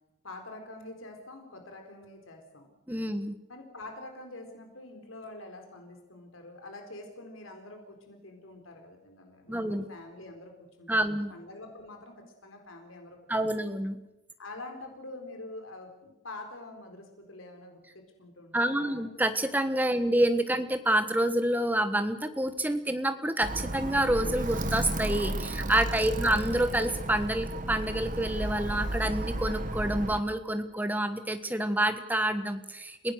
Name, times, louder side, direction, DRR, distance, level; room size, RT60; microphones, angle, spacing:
voice 1, 0.2-2.7 3.5-10.5 10.8-13.2 14.4-19.0 19.9-20.1, left 2 dB, 85° left, 4 dB, 4.3 m, -46 dB
voice 2, 2.9-3.3 9.5-9.8 10.9-11.3 13.3-14.0 18.5-33.1, right 1 dB, 10° right, 9 dB, 1.3 m, -28 dB
Alarm, 23.4-30.2, right 1 dB, 40° right, 1.4 m, -33 dB
29.5 x 17.0 x 6.5 m, 0.95 s
head